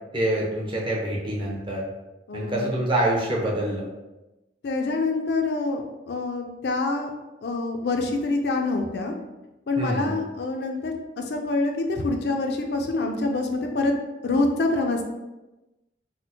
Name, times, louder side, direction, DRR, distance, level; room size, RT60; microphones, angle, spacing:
voice 1, 0.1-1.9 2.3-3.9 9.8-10.1, right 1 dB, 30° right, -3 dB, 0.6 m, -26 dB
voice 2, 2.3-2.7 4.6-7.1 7.4-9.1 9.7-13.9 14.2-15.1, left 3 dB, 65° left, 3 dB, 0.4 m, -26 dB
4.2 x 2.1 x 2.7 m, 1.0 s
head